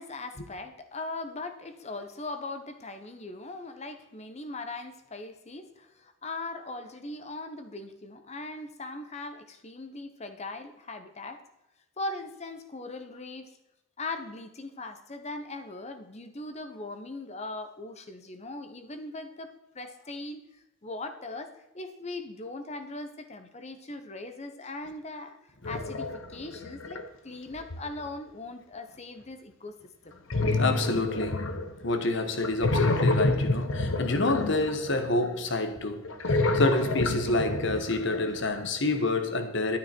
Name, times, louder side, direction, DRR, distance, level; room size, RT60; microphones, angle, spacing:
voice 1, 0.0-11.4 12.0-13.5 14.0-25.4 25.6-29.8 30.0-30.2, left 2 dB, 35° left, 1.0 m, -40 dB
sound 1, 25.6-27.0 27.6-28.0 30.3-32.0 32.4-35.3 36.0-38.6, left 2 dB, 85° left, 1.1 m, -28 dB
voice 2, 30.5-31.5 31.8-39.8, left 2 dB, 65° left, 1.4 m, -28 dB
12.0 x 9.6 x 4.5 m
head